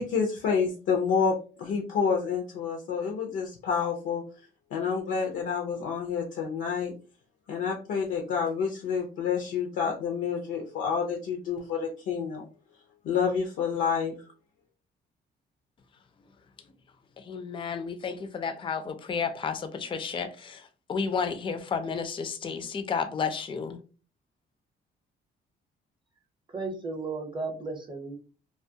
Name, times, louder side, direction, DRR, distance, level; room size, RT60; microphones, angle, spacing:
voice 1, 0.0-4.2 4.7-6.9 7.5-12.5 13.0-14.2, left 6 dB, 80° left, 0.5 m, -28 dB
voice 2, 17.2-23.8, left 5 dB, 25° left, 0.4 m, -32 dB
voice 3, 26.5-28.2, right 3 dB, 25° right, 0.6 m, -34 dB
2.3 x 2.1 x 2.6 m
cardioid pair, 90°, 20 cm